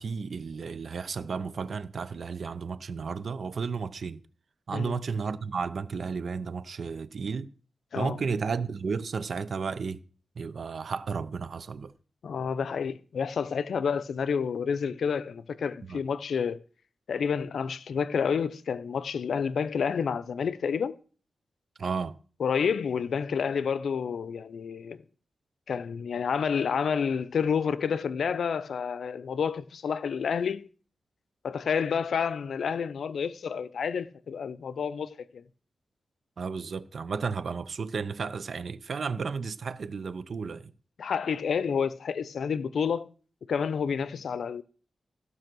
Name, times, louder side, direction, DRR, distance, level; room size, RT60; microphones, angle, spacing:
voice 1, 0.0-4.2 4.7-7.5 8.0-10.0 10.4-11.9 15.8-16.0 21.8-22.2 36.4-40.7, right 5 dB, 60° right, 0.6 m, -33 dB
voice 2, 12.2-16.6 17.1-21.0 22.4-25.0 25.7-30.7 31.4-35.4 41.0-43.1 43.5-44.6, left 6 dB, 80° left, 0.5 m, -29 dB
15.0 x 5.4 x 6.1 m
wide cardioid pair, 110°, 0 cm